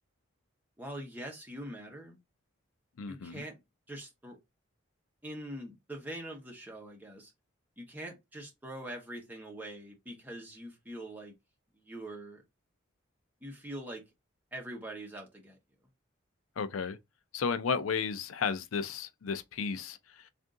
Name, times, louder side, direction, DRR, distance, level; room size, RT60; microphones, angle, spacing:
voice 1, 0.8-2.2 3.1-3.6 3.9-4.4 5.2-7.3 7.8-11.3 11.7-12.4 13.4-14.0 14.5-15.6, right 1 dB, 10° right, 1.0 m, -43 dB
voice 2, 3.0-3.4 16.6-17.0 17.3-20.3, left 5 dB, 90° left, 0.5 m, -33 dB
3.5 x 2.5 x 3.7 m
head